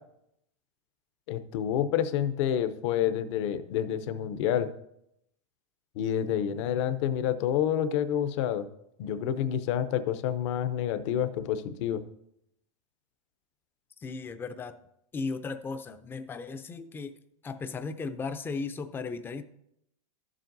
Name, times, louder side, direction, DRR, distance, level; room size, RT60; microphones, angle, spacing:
voice 1, 1.3-4.7 6.0-8.7 9.0-12.0, left 10 dB, 55° left, 12 dB, 0.7 m, -28 dB
voice 2, 14.0-14.8 15.1-17.2 17.4-19.4, left 4 dB, 10° left, 10 dB, 0.4 m, -36 dB
12.0 x 7.4 x 2.6 m, 0.77 s
supercardioid pair, 140°, 18 cm